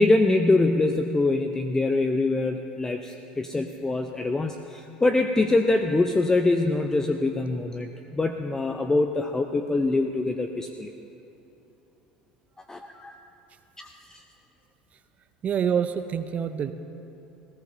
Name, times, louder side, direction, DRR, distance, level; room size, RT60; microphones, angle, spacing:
voice 1, 0.0-10.9 12.7-13.2 13.8-14.2, left 2 dB, 15° left, 6 dB, 0.6 m, -24 dB
voice 2, 15.4-16.7, right 8 dB, 40° right, 10 dB, 0.6 m, -26 dB
19.5 x 17.0 x 2.7 m, 2.9 s
figure-of-eight pair, 70°, 4 cm